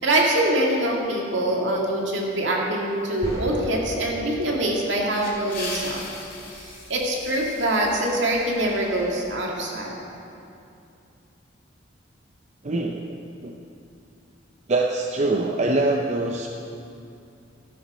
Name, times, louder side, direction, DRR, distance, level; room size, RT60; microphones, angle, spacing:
voice 1, 0.0-6.1 6.6-10.1, right 1 dB, 70° right, -2 dB, 2.0 m, -24 dB
sound 1, 3.2-4.8, equal, 20° left, 2.5 m, -36 dB
sound 2, 5.0-9.4, left 3 dB, 50° left, 2.5 m, -39 dB
voice 2, 12.6-13.5 14.7-16.5, right 2 dB, 35° right, 2 dB, 0.5 m, -24 dB
13.5 x 7.1 x 6.1 m, 2.6 s
head